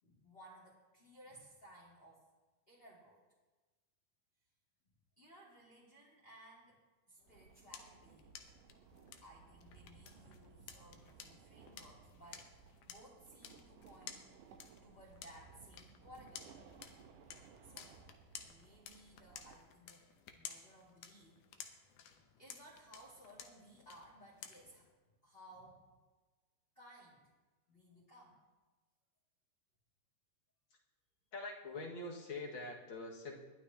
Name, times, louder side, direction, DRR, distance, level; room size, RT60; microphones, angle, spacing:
voice 1, 0.0-2.3 2.7-3.2 5.2-6.8 7.1-8.3 9.2-14.2 14.8-16.4 17.6-18.0 18.5-20.1 20.3-21.4 22.4-24.9 25.2-26.0 26.8-27.3 27.7-28.4, right 1 dB, 20° left, -6 dB, 2.0 m, -59 dB
sound 1, 7.2-24.9, left 8 dB, 75° left, 2.3 m, -55 dB
sound 2, 7.3-19.6, right 5 dB, 80° right, 2.4 m, -61 dB
voice 2, 31.3-33.4, left 2 dB, 40° left, -1 dB, 2.2 m, -44 dB
21.0 x 12.0 x 2.8 m, 1.3 s
omnidirectional pair, 3.8 m